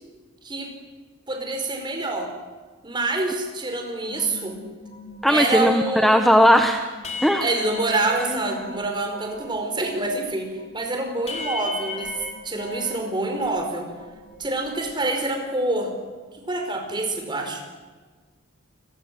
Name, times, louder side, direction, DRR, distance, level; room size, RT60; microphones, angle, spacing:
voice 1, 1.3-2.3 2.8-4.6 5.3-6.3 7.4-12.1 12.4-13.9 14.4-15.9 16.3-17.6, right 2 dB, 20° right, 4 dB, 5.1 m, -26 dB
sound 1, 4.1-9.5 9.8-13.6 13.9-15.1, left 2 dB, 35° left, 4.6 m, -38 dB
voice 2, 5.2-6.8 7.2-7.4 8.1-8.3, equal, ahead, 5 dB, 1.3 m, -17 dB
28.5 x 22.0 x 7.8 m, 1.4 s
head